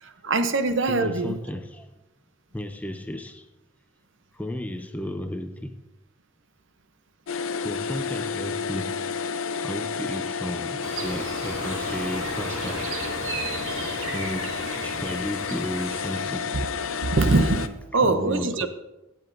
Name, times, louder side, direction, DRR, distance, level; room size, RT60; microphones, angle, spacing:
voice 1, 0.0-1.4 17.0-18.7, right 3 dB, 65° right, 0.7 m, -23 dB
voice 2, 0.9-1.9 2.5-3.5 4.3-5.8 7.6-9.1 9.6-12.9 14.1-16.5 18.0-18.7, left 1 dB, 5° left, 0.4 m, -34 dB
sound 1, 7.3-17.7, left 5 dB, 75° left, 0.5 m, -31 dB
sound 2, 10.8-16.3, right 3 dB, 80° right, 1.8 m, -35 dB
17.0 x 7.8 x 2.6 m
head